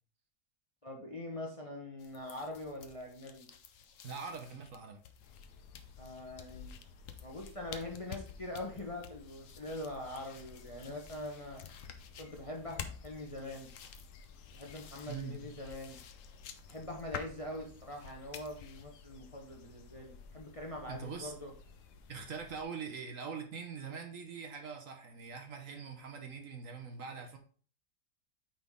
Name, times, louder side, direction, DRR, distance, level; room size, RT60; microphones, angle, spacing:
voice 1, 0.8-3.5 6.0-6.8 7.2-11.9 12.2-13.7 14.5-16.0 16.7-21.5, left 1 dB, 25° left, 0 dB, 1.0 m, -43 dB
sound 1, 2.0-18.8, left 8 dB, 60° left, 1.0 m, -51 dB
voice 2, 4.0-5.0 15.1-15.5 20.9-21.3 22.1-27.4, right 5 dB, 60° right, 5 dB, 1.2 m, -43 dB
sound 2, 5.2-22.6, left 4 dB, 90° left, 1.3 m, -56 dB
8.8 x 4.0 x 3.5 m, 0.42 s
omnidirectional pair, 1.7 m